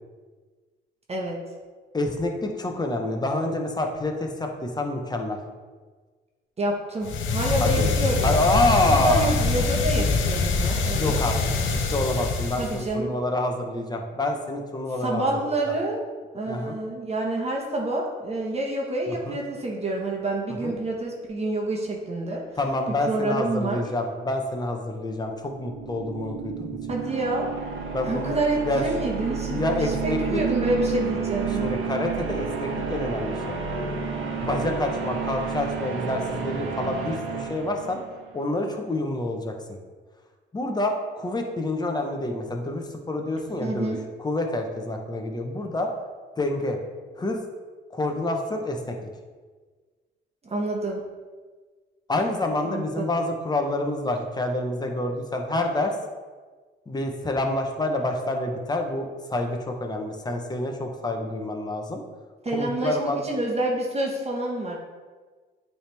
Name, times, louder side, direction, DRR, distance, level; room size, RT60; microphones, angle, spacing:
voice 1, 1.9-5.4 7.6-8.0 8.2-9.3 11.0-11.4 11.9-15.5 16.5-16.8 19.1-19.4 20.6-20.7 22.6-26.7 27.9-28.3 28.7-28.8 29.5-30.4 31.6-33.5 34.4-38.0 38.3-39.5 40.5-45.9 46.4-46.8 47.2-47.4 47.9-48.9 52.1-55.9 56.9-62.0 62.5-63.2, left 2 dB, 20° left, 3 dB, 0.9 m, -27 dB
voice 2, 6.6-8.4 9.0-11.2 12.6-13.1 15.0-16.0 16.3-22.4 22.9-23.8 26.9-27.5 28.0-31.7 43.6-44.0 50.4-51.0 52.6-53.1 62.4-64.8, right 2 dB, 30° right, -1 dB, 1.2 m, -28 dB
sound 1, 7.0-12.9, left 3 dB, 75° left, 0.8 m, -24 dB
sound 2, 25.4-38.3, right 6 dB, 85° right, 1.0 m, -31 dB
8.6 x 3.4 x 3.4 m, 1.4 s
cardioid pair, 90°, 20 cm